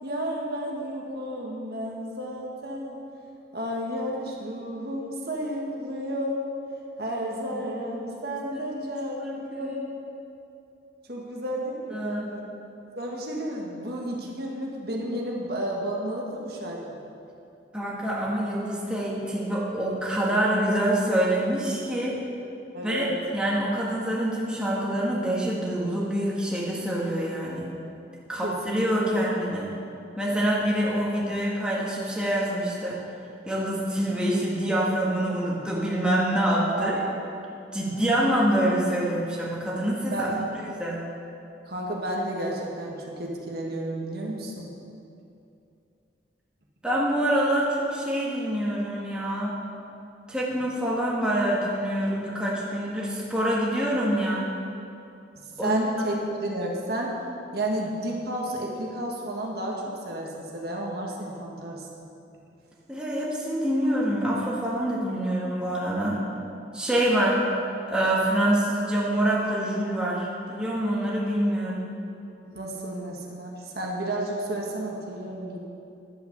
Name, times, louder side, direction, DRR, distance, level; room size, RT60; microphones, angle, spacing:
voice 1, 0.0-3.0 3.5-6.4 7.0-9.2 9.5-9.8 11.1-12.4 12.9-17.0 22.7-23.2 28.4-29.2 36.7-37.3 40.1-40.6 41.7-44.7 55.6-57.2 57.5-61.9 72.4-75.6, right 1 dB, 55° right, -2 dB, 1.6 m, -32 dB
voice 2, 7.9-8.2 8.7-8.8 9.2-9.8 11.9-12.2 17.7-22.2 22.8-23.1 23.3-27.7 28.3-29.7 30.2-33.0 33.4-37.0 37.7-40.3 40.8-41.0 46.8-49.5 50.3-54.4 55.6-55.8 62.9-66.2 66.7-67.4 67.9-71.9, right 1 dB, 5° right, -6 dB, 1.7 m, -26 dB
11.0 x 8.0 x 6.7 m, 2.7 s
head